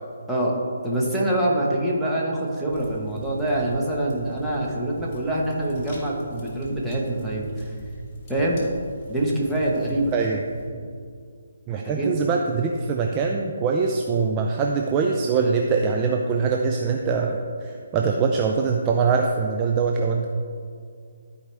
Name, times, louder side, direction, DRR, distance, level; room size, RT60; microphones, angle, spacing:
voice 1, 0.3-7.7 8.3-8.6 9.1-10.1 11.7-12.3, right 1 dB, ahead, -7 dB, 1.3 m, -25 dB
sound 1, 2.7-10.7, right 1 dB, 25° left, 1.8 m, -40 dB
voice 2, 10.1-10.4 11.7-20.3, right 5 dB, 20° right, 1 dB, 0.5 m, -23 dB
13.5 x 4.8 x 3.4 m, 2.3 s
hypercardioid pair, 160°, 0 cm